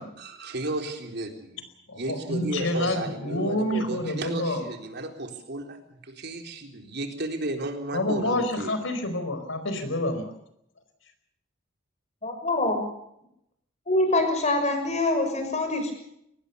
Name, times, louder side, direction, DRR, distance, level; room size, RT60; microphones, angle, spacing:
voice 1, 0.0-1.6 1.9-8.7, right 1 dB, 55° right, 4 dB, 3.9 m, -33 dB
voice 2, 1.9-4.6 7.9-10.3, left 1 dB, 70° left, 8 dB, 4.6 m, -28 dB
voice 3, 12.2-12.8 13.9-15.9, left 2 dB, 35° left, 6 dB, 6.3 m, -24 dB
23.5 x 19.5 x 7.0 m, 0.77 s
head